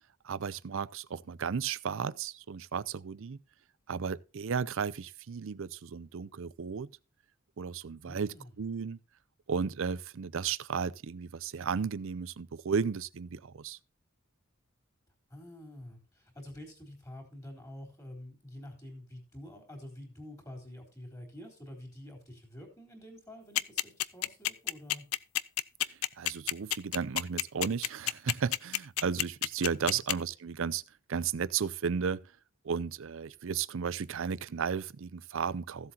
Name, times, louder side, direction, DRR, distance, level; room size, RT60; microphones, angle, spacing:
voice 1, 0.2-3.4 3.9-6.9 7.6-9.0 9.5-13.8 25.9-30.8 31.1-32.2 32.6-35.9, right 6 dB, 65° right, 0.5 m, -34 dB
voice 2, 8.0-8.5 15.3-25.0 29.8-30.0, left 1 dB, 15° left, 3.6 m, -48 dB
sound 1, 23.6-30.1, left 14 dB, 85° left, 0.5 m, -29 dB
15.5 x 7.7 x 2.8 m
head